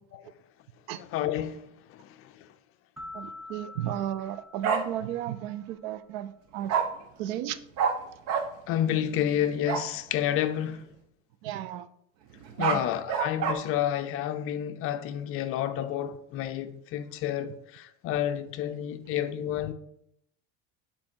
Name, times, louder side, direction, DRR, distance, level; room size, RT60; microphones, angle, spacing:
voice 1, 0.9-2.5 8.7-10.8 12.6-19.7, left 10 dB, 45° left, 0.6 m, -30 dB
sound 1, 3.0-5.7, left 2 dB, ahead, 1.1 m, -46 dB
voice 2, 3.1-6.7 7.2-7.6 11.4-11.9 12.6-12.8, right 12 dB, 80° right, 0.6 m, -34 dB
Bark, 4.6-4.8 6.7-6.8 7.8-7.9 8.3-8.4 9.7-9.9 12.4-13.5, right 7 dB, 55° right, 1.0 m, -26 dB
7.6 x 4.3 x 4.5 m
cardioid pair, 140°, 30 cm